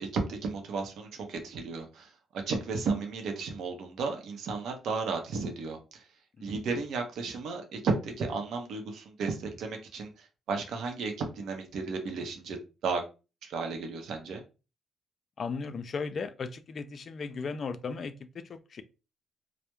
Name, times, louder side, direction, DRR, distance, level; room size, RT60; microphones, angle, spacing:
voice 1, 0.0-2.1 2.5-6.0 6.4-10.1 10.5-13.0 13.4-14.4, right 4 dB, 75° right, 0.6 m, -33 dB
voice 2, 15.4-18.8, left 5 dB, 50° left, 0.3 m, -36 dB
2.2 x 2.0 x 2.9 m
cardioid pair, 90°, 0 cm